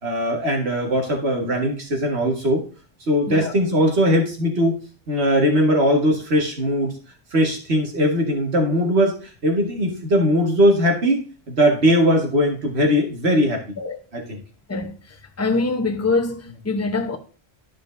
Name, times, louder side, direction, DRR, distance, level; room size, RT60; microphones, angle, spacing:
voice 1, 0.0-2.6 3.1-4.8 5.1-7.0 7.3-9.2 9.4-13.6 14.1-14.4, equal, 75° right, 2.0 m, -20 dB
voice 2, 15.4-17.2, left 3 dB, 15° left, 0.8 m, -24 dB
12.5 x 5.1 x 2.7 m
omnidirectional pair, 1.1 m